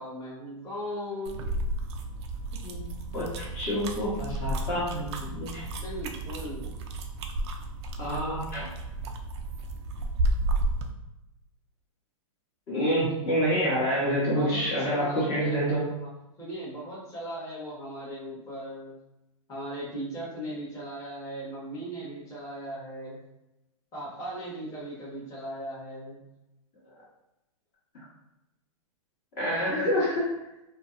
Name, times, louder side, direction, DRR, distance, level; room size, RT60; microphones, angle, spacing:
voice 1, 0.0-1.6 5.8-6.7 14.2-16.1 16.4-19.0 19.5-23.2 23.9-26.2, equal, 20° left, -9 dB, 1.0 m, -38 dB
sound 1, 1.2-10.9, right 1 dB, 50° right, 0.4 m, -32 dB
voice 2, 3.1-5.6 8.0-8.7 12.7-15.8 29.4-30.3, equal, 40° left, -6 dB, 1.1 m, -27 dB
2.5 x 2.0 x 2.4 m, 0.92 s
hypercardioid pair, 125°, 18 cm